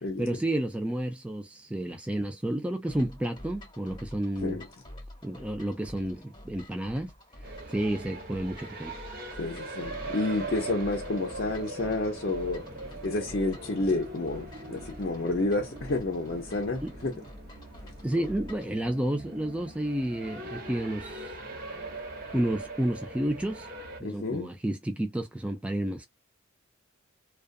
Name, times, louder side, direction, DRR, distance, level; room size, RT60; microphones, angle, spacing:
voice 1, 0.2-4.6 5.2-7.1 7.4-9.0 16.8-16.9 18.0-21.3 22.3-23.7 24.0-26.1, right 1 dB, 5° right, 0.3 m, -31 dB
sound 1, 2.9-18.7, left 1 dB, 25° left, 1.0 m, -48 dB
sound 2, 7.4-24.0, right 2 dB, 45° right, 0.9 m, -42 dB
voice 2, 9.4-12.6 13.0-17.1 24.0-24.5, left 2 dB, 50° left, 0.5 m, -30 dB
sound 3, 9.8-17.3, right 2 dB, 25° right, 0.8 m, -50 dB
2.4 x 2.3 x 2.4 m
head